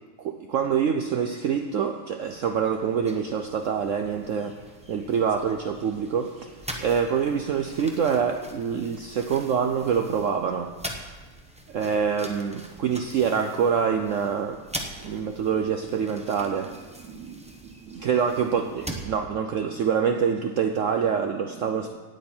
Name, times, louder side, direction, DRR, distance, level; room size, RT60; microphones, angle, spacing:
voice 1, 0.2-4.6 4.9-10.7 11.7-14.6 15.0-22.0, right 7 dB, 75° right, 6 dB, 0.7 m, -26 dB
sound 1, 2.2-19.1, right 1 dB, 10° right, 0.4 m, -43 dB
18.0 x 7.7 x 4.4 m, 1.4 s
omnidirectional pair, 1.9 m